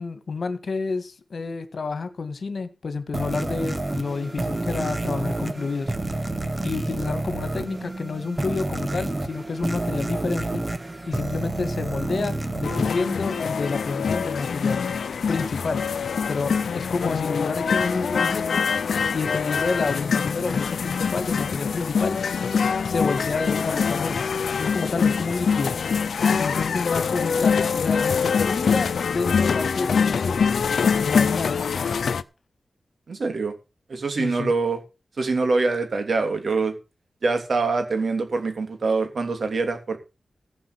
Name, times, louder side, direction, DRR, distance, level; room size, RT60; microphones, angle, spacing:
voice 1, 0.0-5.9 6.6-10.6 11.1-14.9 15.3-15.8 16.3-18.6 19.1-22.2 22.9-24.3 24.6-25.8 26.4-30.6 31.0-31.6 34.1-34.5, left 4 dB, 60° left, 1.9 m, -29 dB
sound 1, 3.1-13.9, right 2 dB, 25° right, 1.9 m, -29 dB
sound 2, 12.6-32.2, left 6 dB, 90° left, 0.8 m, -24 dB
voice 2, 33.1-33.5 33.9-34.8 35.2-36.7 37.2-40.0, right 3 dB, 60° right, 3.2 m, -24 dB
15.5 x 5.2 x 8.5 m
wide cardioid pair, 105°, 0 cm